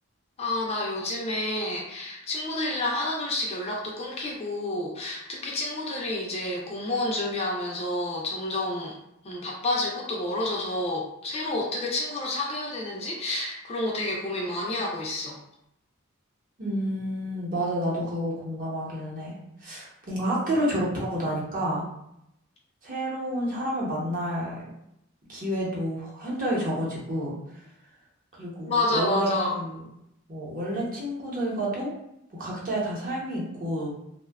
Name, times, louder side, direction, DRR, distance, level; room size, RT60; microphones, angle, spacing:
voice 1, 0.4-8.9 9.2-15.4 28.7-29.5, left 2 dB, 30° left, -2 dB, 0.4 m, -29 dB
voice 2, 16.6-19.4 19.6-21.8 22.8-24.6 25.3-27.3 28.4-29.8 30.3-31.9 32.3-33.9, equal, 40° right, -5 dB, 0.8 m, -29 dB
2.6 x 2.1 x 2.3 m, 0.79 s
head